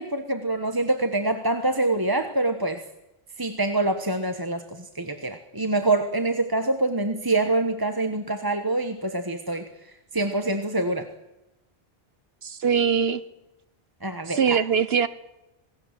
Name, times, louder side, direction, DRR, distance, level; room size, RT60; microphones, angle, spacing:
voice 1, 0.0-2.8 3.4-9.7 10.1-11.1 14.0-14.6, right 2 dB, 20° right, 1.4 m, -25 dB
voice 2, 12.4-13.2 14.3-15.1, right 7 dB, 75° right, 1.2 m, -22 dB
27.0 x 18.5 x 7.6 m
omnidirectional pair, 1.0 m